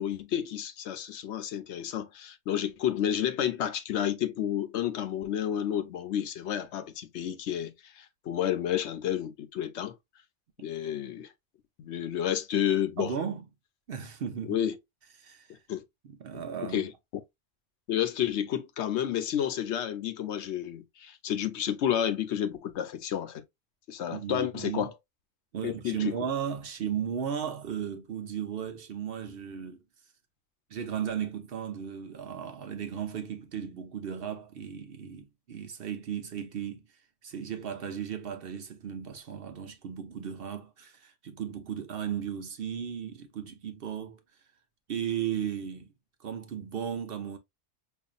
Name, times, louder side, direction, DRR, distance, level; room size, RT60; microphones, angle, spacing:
voice 1, 0.0-10.0 10.6-11.3 11.8-13.1 14.4-14.8 15.7-15.8 16.3-16.9 17.9-23.4 23.9-24.9 25.6-26.1, left 10 dB, 70° left, 0.8 m, -31 dB
voice 2, 13.0-13.4 13.9-14.6 15.2-15.6 16.0-16.9 24.1-24.9 25.5-29.8 30.7-36.8 37.2-44.2 44.9-45.9 46.2-47.4, right 8 dB, 55° right, 0.8 m, -35 dB
5.3 x 2.5 x 2.4 m
omnidirectional pair, 1.3 m